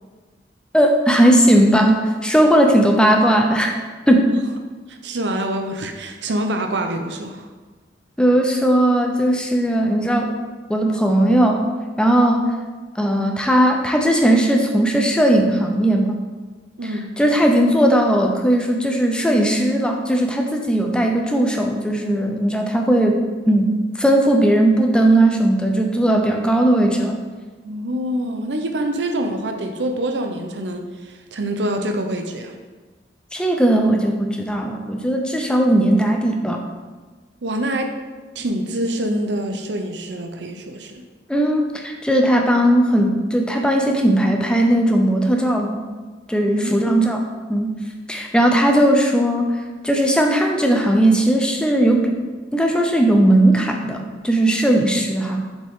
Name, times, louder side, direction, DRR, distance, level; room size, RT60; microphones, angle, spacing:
voice 1, 0.7-3.7 4.1-4.4 8.2-10.4 10.7-11.6 12.0-12.5 13.0-16.2 17.2-27.1 33.3-36.6 41.3-45.8 46.3-47.2 47.5-47.7 48.1-52.2 52.5-54.0 54.2-55.4, right 1 dB, 5° left, 2 dB, 0.6 m, -17 dB
voice 2, 4.9-7.5 16.8-17.1 27.6-32.5 37.4-38.0 38.3-41.0 46.5-47.0, right 1 dB, 85° right, 5 dB, 0.7 m, -26 dB
7.1 x 5.2 x 3.7 m, 1.3 s
head